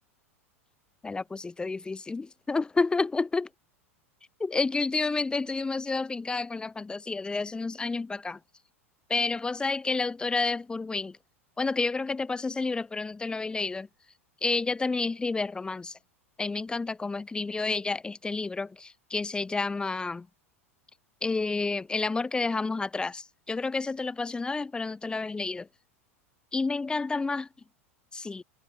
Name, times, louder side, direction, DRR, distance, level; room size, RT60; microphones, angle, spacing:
voice 1, 1.0-3.5 4.4-8.4 9.1-11.2 11.6-13.9 14.4-16.0 16.4-20.3 21.2-25.7 26.5-27.5 28.1-28.4, left 3 dB, 10° left, 0.9 m, -30 dB
figure-of-eight pair, 85°, 8 cm